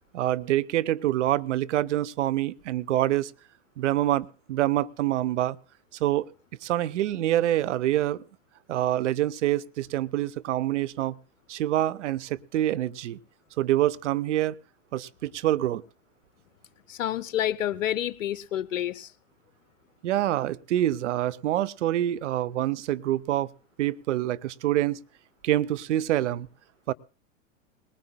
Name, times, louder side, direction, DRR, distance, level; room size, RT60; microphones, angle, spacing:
voice 1, 0.1-3.3 3.8-5.6 6.0-6.3 6.6-8.2 8.7-11.2 11.5-13.2 13.6-14.5 14.9-15.8 20.0-23.5 23.8-25.0 25.4-26.5 26.9-27.0, right 13 dB, 65° right, 0.6 m, -26 dB
voice 2, 16.9-19.1, left 11 dB, 75° left, 0.6 m, -29 dB
20.5 x 18.5 x 2.2 m
hypercardioid pair, 105°, 39 cm